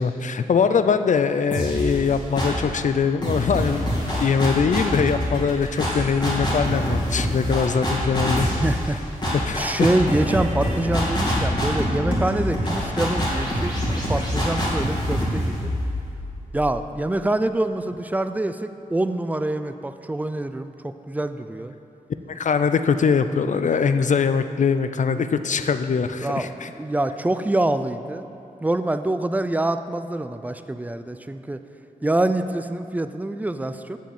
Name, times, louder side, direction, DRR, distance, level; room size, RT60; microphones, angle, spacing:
voice 1, 0.0-3.9 4.2-8.5 9.4-9.9 22.3-26.7, left 6 dB, 60° left, 10 dB, 0.5 m, -22 dB
sound 1, 1.5-2.7 3.2-16.9, equal, 30° left, 2.5 m, -25 dB
voice 2, 8.4-9.0 9.6-13.7 14.1-15.7 16.5-21.7 26.2-28.3 28.6-31.6 32.0-34.0, right 1 dB, 10° right, 10 dB, 0.4 m, -25 dB
7.6 x 7.1 x 7.2 m, 2.7 s
wide cardioid pair, 115°, 15 cm